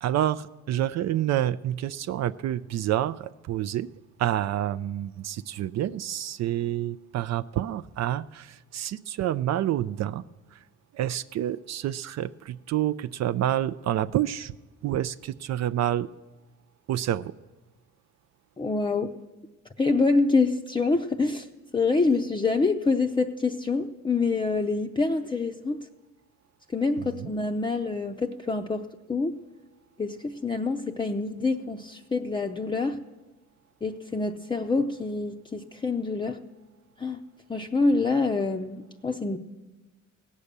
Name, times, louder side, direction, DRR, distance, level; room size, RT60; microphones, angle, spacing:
voice 1, 0.0-3.9 4.2-10.2 10.5-10.6 10.9-14.5 14.8-16.1 16.9-17.3 27.0-27.3, right 12 dB, 60° right, 14 dB, 0.4 m, -28 dB
voice 2, 18.6-19.1 19.8-21.5 21.7-25.8 26.7-29.4 30.0-33.0 33.8-36.4 37.0-37.2 37.5-39.4, left 3 dB, 15° left, 4 dB, 0.6 m, -26 dB
16.5 x 8.4 x 6.7 m, 1.2 s
cardioid pair, 90°, 30 cm